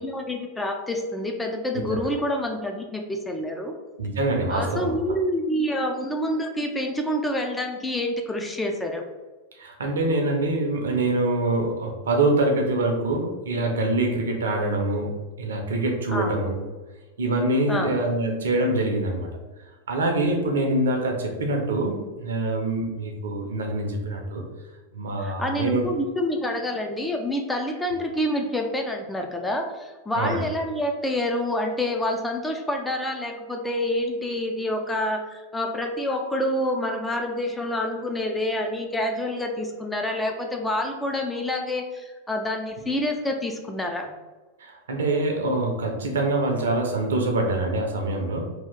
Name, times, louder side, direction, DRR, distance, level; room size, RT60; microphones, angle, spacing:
voice 1, 0.0-3.7 4.5-9.0 16.1-16.3 17.7-18.0 25.2-44.1, left 1 dB, 10° left, 3 dB, 0.4 m, -27 dB
voice 2, 4.0-4.9 9.5-16.5 17.2-19.3 19.9-24.4 24.9-25.9 30.1-30.5 44.6-48.5, right 2 dB, 65° right, 2 dB, 0.6 m, -25 dB
2.7 x 2.4 x 3.6 m, 1.2 s
figure-of-eight pair, 90°, 0 cm